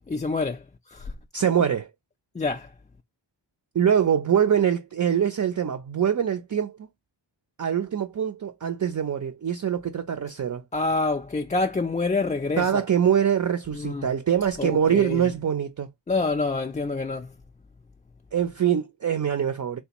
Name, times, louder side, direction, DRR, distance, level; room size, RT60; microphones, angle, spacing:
voice 1, 0.1-0.6 0.9-1.1 2.3-2.7 10.7-12.8 13.7-14.1 14.6-15.2 16.1-17.3, left 3 dB, 20° left, 0.3 m, -27 dB
voice 2, 1.3-1.9 3.7-6.9 7.6-10.6 12.6-15.9 18.3-19.8, right 8 dB, 45° right, 0.5 m, -24 dB
3.4 x 2.3 x 2.9 m
cardioid pair, 45°, 45 cm